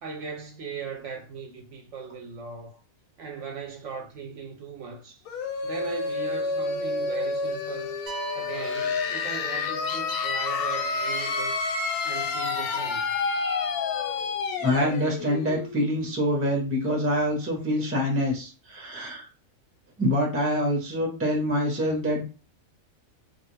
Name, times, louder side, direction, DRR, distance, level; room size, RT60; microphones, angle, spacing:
voice 1, 0.0-2.8 3.2-5.2 5.6-8.0 8.3-11.6 12.0-13.0, right 5 dB, 65° right, 0.9 m, -38 dB
sound 1, 5.3-16.8, left 4 dB, 90° left, 1.1 m, -29 dB
sound 2, 8.1-10.0, right 10 dB, 90° right, 1.1 m, -41 dB
voice 2, 14.6-19.3 20.0-22.2, equal, 15° right, 0.6 m, -25 dB
2.5 x 2.4 x 3.1 m
omnidirectional pair, 1.5 m